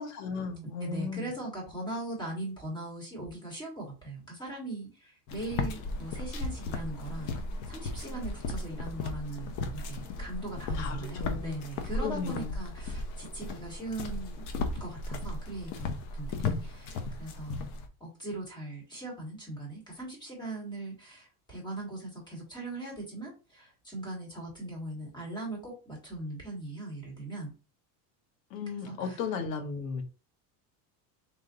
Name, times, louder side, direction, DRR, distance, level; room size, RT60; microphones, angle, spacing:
voice 1, 0.0-1.3 10.7-11.5 11.9-12.6 16.4-16.6 28.5-30.0, left 5 dB, 80° left, 1.2 m, -35 dB
voice 2, 0.8-7.4 7.7-14.4 14.7-17.6 18.0-27.5 28.8-29.2, right 2 dB, 10° left, 1.7 m, -40 dB
sound 1, 5.3-17.9, left 3 dB, 40° left, 0.6 m, -36 dB
3.7 x 2.8 x 3.9 m
cardioid pair, 175°, 46 cm